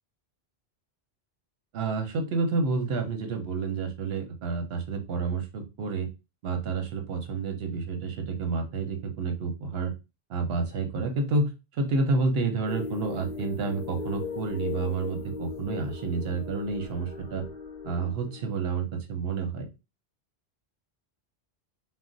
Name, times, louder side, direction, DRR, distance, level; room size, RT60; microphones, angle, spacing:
voice 1, 1.7-6.1 6.4-9.9 10.3-17.4 17.8-19.7, right 4 dB, 70° right, 5 dB, 0.9 m, -29 dB
sound 1, 12.7-18.6, left 5 dB, 45° left, 0.7 m, -37 dB
2.4 x 2.2 x 3.8 m, 0.27 s
omnidirectional pair, 1.1 m